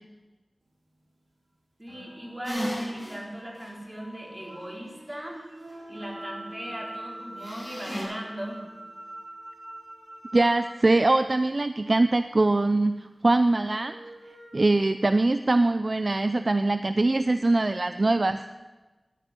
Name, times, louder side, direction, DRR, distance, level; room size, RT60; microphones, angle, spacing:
voice 1, 1.8-5.4 5.9-8.7, equal, 25° right, -1 dB, 4.3 m, -38 dB
sound 1, 1.9-11.0 13.5-14.7, right 1 dB, 85° right, 4.4 m, -45 dB
sound 2, 2.4-3.2 3.6-3.7 7.4-8.0, equal, 25° left, 6.7 m, -33 dB
voice 2, 10.3-13.9 14.5-18.4, right 2 dB, 55° right, 10 dB, 0.5 m, -22 dB
11.5 x 10.0 x 9.9 m, 1.2 s
wide cardioid pair, 45°, 0 cm